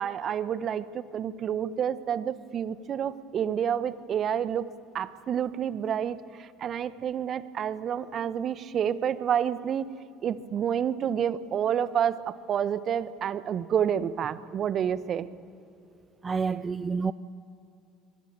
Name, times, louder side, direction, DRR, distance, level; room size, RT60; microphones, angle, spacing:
voice 1, 0.0-4.7 4.9-9.9 10.2-15.3, right 9 dB, 50° right, 1.3 m, -29 dB
voice 2, 16.2-17.1, right 5 dB, 30° right, 0.7 m, -28 dB
26.0 x 24.0 x 9.0 m
hypercardioid pair, 60°, 0 cm